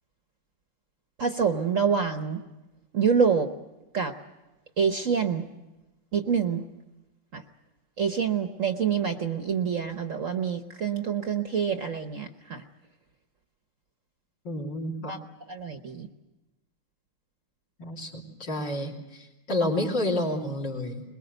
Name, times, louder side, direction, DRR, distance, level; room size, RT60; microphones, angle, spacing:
voice 1, 1.2-2.4 2.9-3.5 3.9-4.1 4.8-5.4 6.1-6.6 7.3-7.4 8.0-12.6 15.1-15.2 15.5-16.1, right 6 dB, 45° right, 6 dB, 1.2 m, -26 dB
voice 2, 14.5-15.2 17.8-21.0, left 1 dB, 60° left, -1 dB, 3.7 m, -30 dB
22.5 x 21.5 x 8.0 m, 1.0 s
omnidirectional pair, 2.2 m